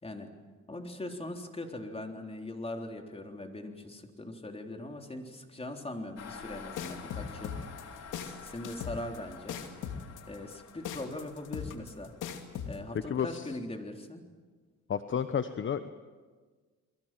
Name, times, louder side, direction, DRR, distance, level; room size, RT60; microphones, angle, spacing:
voice 1, 0.0-0.3 0.7-7.5 8.1-9.6 10.3-12.1 12.7-14.2, left 1 dB, 20° left, 4 dB, 3.7 m, -41 dB
sound 1, 6.2-13.2, left 6 dB, 60° left, 3.7 m, -49 dB
sound 2, 6.8-12.8, left 8 dB, 90° left, 2.6 m, -38 dB
voice 2, 12.9-13.5 14.9-15.9, left 7 dB, 40° left, 11 dB, 1.1 m, -31 dB
30.0 x 22.0 x 7.6 m, 1.4 s
cardioid pair, 90°, 30 cm